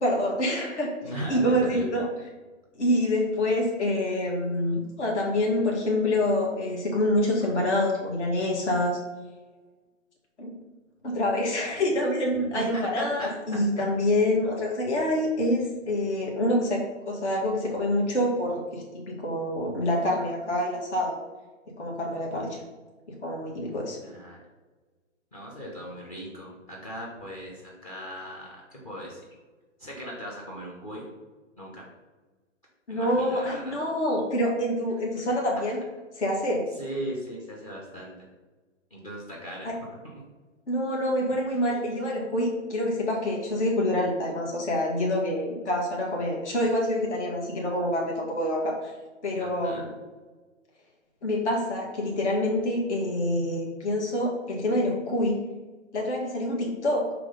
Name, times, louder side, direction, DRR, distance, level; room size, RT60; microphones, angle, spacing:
voice 1, 0.0-0.9 1.3-2.1 2.8-9.0 10.4-10.5 11.0-21.2 21.8-22.6 23.2-24.0 32.9-35.8 36.2-36.6 39.6-39.7 40.7-48.9 49.2-49.9 51.2-55.5 55.9-57.1, left 1 dB, 65° left, -2 dB, 1.9 m, -26 dB
voice 2, 1.0-1.9 12.5-13.3 13.7-13.8 24.0-24.4 25.3-29.2 29.8-31.0 31.6-31.9 32.9-33.8 36.8-38.1 38.9-39.7 49.4-49.8, equal, 30° left, -3 dB, 0.9 m, -38 dB
6.0 x 3.4 x 5.3 m, 1.3 s
hypercardioid pair, 165°, 37 cm